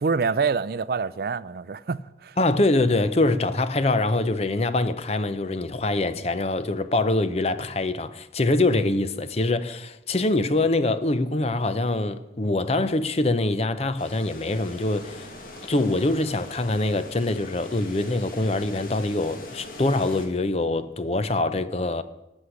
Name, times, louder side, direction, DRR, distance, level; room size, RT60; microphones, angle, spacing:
voice 1, 0.0-2.4, right 5 dB, 55° right, 0.4 m, -26 dB
voice 2, 2.4-15.3 15.7-22.0, left 2 dB, 35° left, 0.6 m, -24 dB
sound 1, 14.0-20.3, left 2 dB, 50° left, 2.0 m, -41 dB
14.0 x 6.4 x 9.7 m
head